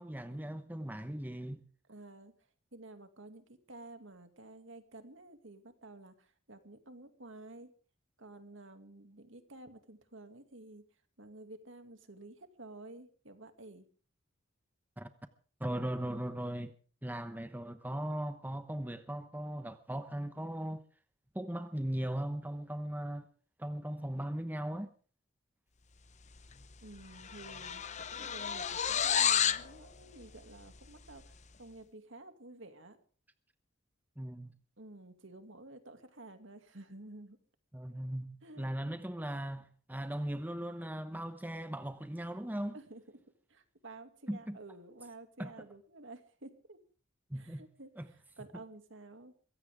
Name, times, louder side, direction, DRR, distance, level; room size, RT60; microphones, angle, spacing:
voice 1, 0.0-1.6 15.0-15.1 15.6-16.7 17.0-20.8 21.3-23.3 23.6-24.9 34.2-34.5 37.7-42.8 44.3-44.6 45.4-45.7 47.3-47.6 48.0-48.1, right 1 dB, 10° right, 0.9 m, -38 dB
voice 2, 1.9-2.4 2.7-7.7 8.2-10.9 11.2-13.9 26.8-31.2 31.6-33.0 34.8-37.4 38.4-38.9 42.7-43.0 43.5-46.8 47.3-49.3, right 2 dB, 65° right, 2.5 m, -52 dB
sound 1, 26.5-26.7 27.0-29.7, left 8 dB, 35° left, 0.9 m, -31 dB
23.0 x 16.5 x 3.7 m
head